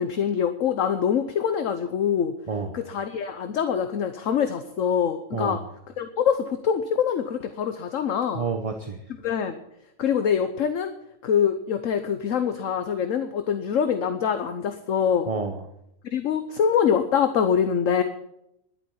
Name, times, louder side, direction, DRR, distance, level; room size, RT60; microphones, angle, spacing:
voice 1, 0.0-2.3 2.7-5.6 6.0-8.5 9.2-9.6 10.0-10.9 11.2-15.3 16.1-18.0, left 7 dB, 60° left, 8 dB, 1.2 m, -24 dB
voice 2, 2.5-2.8 5.3-5.7 8.3-9.0 15.3-15.6, right 4 dB, 30° right, 5 dB, 0.8 m, -29 dB
11.5 x 8.8 x 9.1 m, 0.81 s
omnidirectional pair, 1.6 m